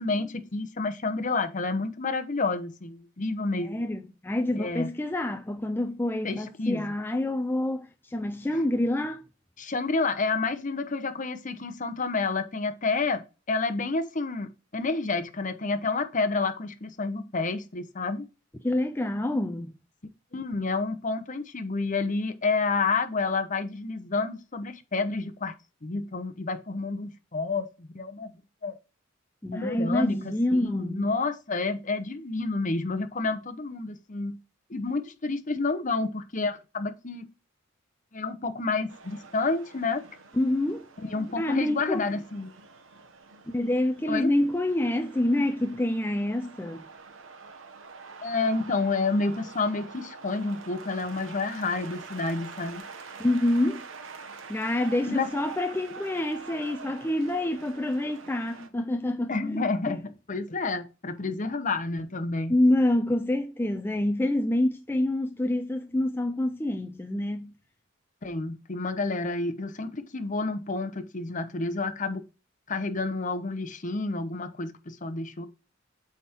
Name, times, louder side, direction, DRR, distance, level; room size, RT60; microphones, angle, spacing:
voice 1, 0.0-3.8 4.6-4.9 6.2-6.8 9.6-18.2 20.3-25.5 25.8-28.3 28.6-28.7 29.5-34.4 34.7-37.3 38.1-40.0 41.0-42.5 44.1-44.3 48.2-52.8 55.1-55.3 59.3-62.6 68.2-72.2 72.7-75.5, left 3 dB, 40° left, 0.9 m, -29 dB
voice 2, 3.6-9.3 18.6-19.7 29.4-31.1 40.3-40.9 41.4-42.0 43.5-46.9 53.2-53.9 54.5-60.0 62.5-67.5, left 1 dB, 10° left, 0.4 m, -27 dB
sound 1, 38.9-58.7, right 4 dB, 90° right, 1.1 m, -46 dB
8.3 x 3.6 x 4.4 m
head